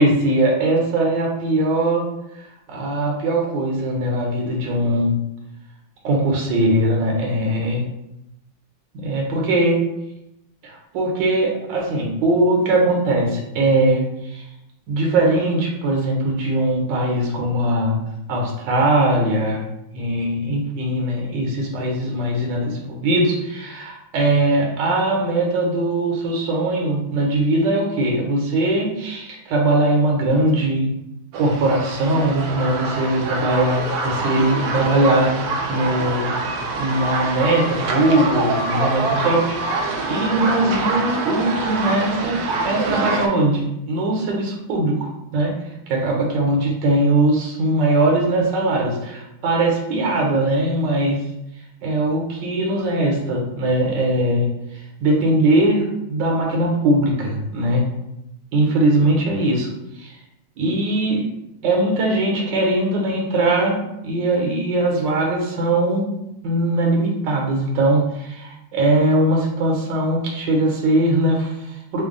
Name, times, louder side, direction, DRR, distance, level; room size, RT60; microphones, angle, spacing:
voice 1, 0.0-2.0 2.4-5.1 6.0-7.9 8.9-9.8 10.6-14.4 14.9-18.0 18.3-19.7 19.9-30.9 31.3-35.3 35.7-36.4 36.7-45.5 45.9-51.2 51.8-57.8 58.5-59.7 60.0-60.1 60.6-61.3 61.6-63.8 64.0-66.1 66.4-72.0, right 1 dB, 70° right, 0 dB, 1.4 m, -20 dB
sound 1, 31.3-43.3, right 3 dB, 90° right, 0.8 m, -25 dB
3.5 x 2.1 x 3.8 m, 0.85 s
omnidirectional pair, 2.2 m